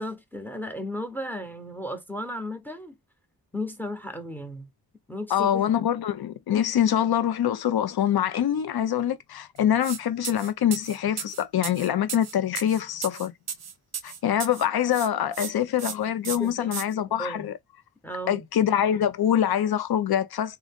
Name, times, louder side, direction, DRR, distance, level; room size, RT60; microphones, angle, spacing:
voice 1, 0.0-3.0 3.5-4.7 5.1-5.6 16.4-16.7 17.2-17.5 18.0-18.5, left 1 dB, 5° left, 0.8 m, -34 dB
voice 2, 5.3-13.3 14.0-17.5 18.3-20.6, left 10 dB, 75° left, 0.7 m, -24 dB
sound 1, 9.8-10.0 10.2-14.7 14.9-15.5 15.8-15.9 16.2-16.8, right 7 dB, 45° right, 0.7 m, -34 dB
3.7 x 2.9 x 3.5 m
wide cardioid pair, 135°, 38 cm